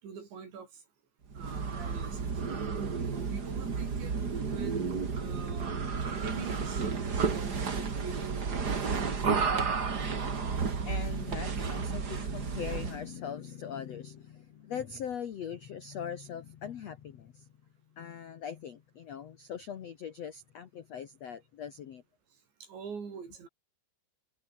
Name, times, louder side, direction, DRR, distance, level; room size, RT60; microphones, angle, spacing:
voice 1, 0.0-0.8 1.4-2.3 3.1-4.2 4.5-5.8 6.1-9.2 22.6-23.5, right 6 dB, 75° right, 7.9 m, -45 dB
sound 1, 1.3-13.1, right 5 dB, 35° right, 1.7 m, -32 dB
voice 2, 9.9-17.5 17.9-22.0, left 8 dB, 80° left, 1.5 m, -41 dB
omnidirectional pair, 5.2 m